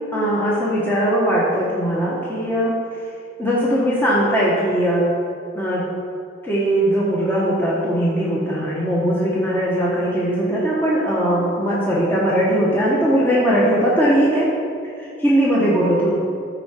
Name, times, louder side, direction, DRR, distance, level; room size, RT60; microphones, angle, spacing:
voice 1, 0.1-2.8 3.4-5.1 5.5-5.9 6.4-14.5 15.0-16.1, equal, 10° left, -7 dB, 1.3 m, -19 dB
13.5 x 4.8 x 4.4 m, 2.5 s
head